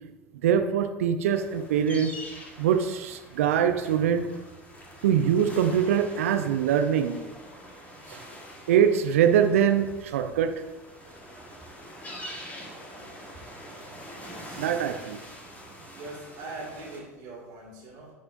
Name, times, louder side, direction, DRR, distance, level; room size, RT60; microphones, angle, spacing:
voice 1, 0.4-2.1 2.6-4.3 5.0-7.2 8.1-8.2 8.7-10.6 14.6-15.2, right 8 dB, 65° right, 8 dB, 0.6 m, -23 dB
sound 1, 1.3-17.0, equal, 20° left, 1.5 m, -45 dB
voice 2, 14.2-14.8 15.9-18.1, right 2 dB, 45° right, -5 dB, 2.3 m, -42 dB
12.0 x 4.3 x 2.6 m, 1.2 s
figure-of-eight pair, 75°, 8 cm